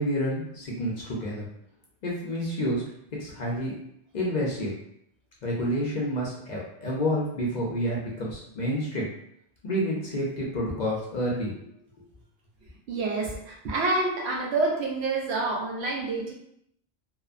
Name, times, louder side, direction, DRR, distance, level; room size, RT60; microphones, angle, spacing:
voice 1, 0.0-1.5 2.0-2.8 3.2-3.7 4.1-4.8 5.4-9.1 9.6-11.5, equal, 50° left, -4 dB, 0.6 m, -29 dB
voice 2, 12.9-16.3, right 3 dB, 80° right, -1 dB, 0.9 m, -28 dB
2.8 x 2.0 x 2.4 m, 0.72 s
omnidirectional pair, 1.1 m